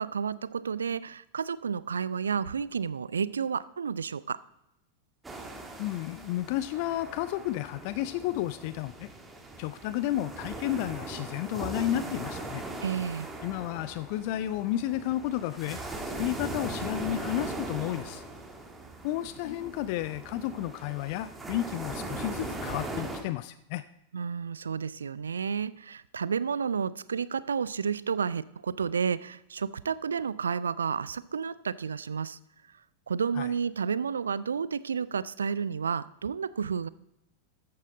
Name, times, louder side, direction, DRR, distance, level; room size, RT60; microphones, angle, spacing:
voice 1, 0.0-4.4 12.8-13.3 24.1-32.4 33.1-36.9, right 6 dB, 70° right, 19 dB, 0.3 m, -31 dB
sound 1, 5.2-23.2, right 2 dB, 10° right, 1.5 m, -40 dB
voice 2, 5.8-9.1 9.6-12.6 13.4-15.8 16.2-18.2 19.0-23.8 33.4-33.5, left 13 dB, 45° left, 14 dB, 0.4 m, -32 dB
14.0 x 8.5 x 3.9 m, 0.85 s
figure-of-eight pair, 90°, 0 cm